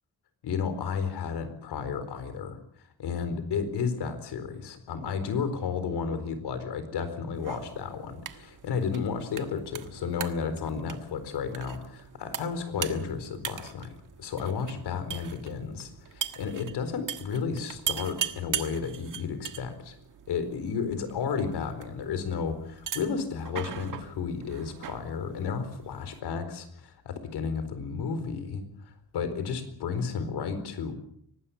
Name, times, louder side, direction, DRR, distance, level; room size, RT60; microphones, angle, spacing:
voice 1, 0.4-2.6 3.0-20.0 20.3-30.9, left 6 dB, 85° left, 11 dB, 4.4 m, -32 dB
sound 1, 7.3-26.2, right 9 dB, 55° right, 1.5 m, -40 dB
24.0 x 19.0 x 7.2 m, 0.68 s
wide cardioid pair, 165°, 38 cm